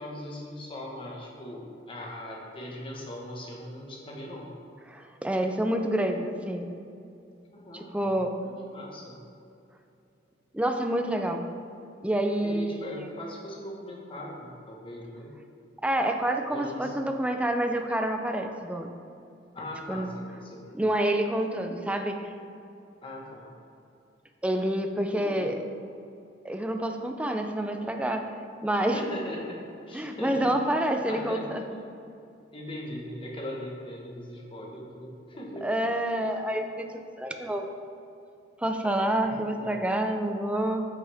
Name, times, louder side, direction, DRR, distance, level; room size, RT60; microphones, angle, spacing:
voice 1, 0.0-4.5 7.5-8.1 8.7-9.1 12.4-15.3 16.5-16.9 19.5-20.8 23.0-23.5 25.1-25.5 28.8-29.6 29.9-30.5 30.8-31.4 32.5-35.7 39.1-40.0, left 1 dB, 30° left, -2 dB, 1.4 m, -40 dB
voice 2, 4.9-6.7 7.7-8.3 10.5-11.5 12.0-12.7 13.0-13.1 15.8-18.9 19.9-20.1 20.7-22.3 24.4-25.6 26.4-28.3 28.6-29.0 29.9-31.6 35.6-36.9 37.2-37.7 38.6-40.8, right 1 dB, 5° right, 4 dB, 0.5 m, -28 dB
9.1 x 6.1 x 3.5 m, 2.6 s
head